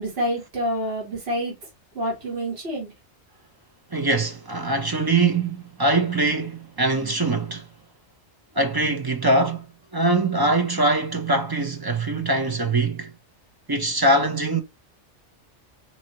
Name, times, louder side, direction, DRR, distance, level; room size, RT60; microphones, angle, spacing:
voice 1, 0.0-1.5 1.9-2.9, equal, 60° right, 2.1 m, -27 dB
voice 2, 3.9-7.7 8.5-9.7 9.9-13.1 13.7-14.6, right 2 dB, 25° right, 0.6 m, -22 dB
4.7 x 2.8 x 2.9 m
omnidirectional pair, 1.2 m